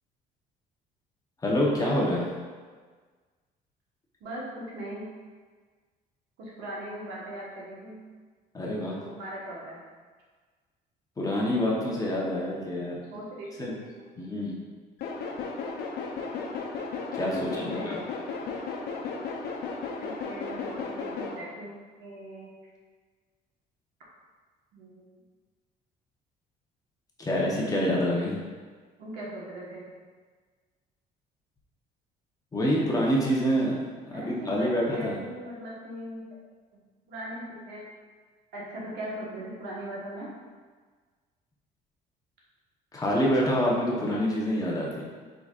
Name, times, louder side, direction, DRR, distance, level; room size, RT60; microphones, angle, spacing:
voice 1, 1.4-2.3 8.5-9.0 11.2-13.0 13.6-13.7 14.2-14.6 17.1-18.0 27.2-28.4 32.5-33.8 34.1-35.2 42.9-45.0, equal, 20° left, -4 dB, 0.9 m, -26 dB
voice 2, 4.2-5.1 6.4-8.0 9.0-9.8 13.1-14.0 17.3-18.0 20.0-21.7 22.0-22.5 24.7-25.0 29.0-29.8 34.1-36.2 36.7-37.9 38.5-40.3, right 1 dB, 80° right, -5 dB, 1.4 m, -39 dB
sound 1, 15.0-21.3, left 4 dB, 75° left, 0.6 m, -35 dB
4.9 x 3.9 x 2.4 m, 1.5 s
cardioid pair, 110°, 17 cm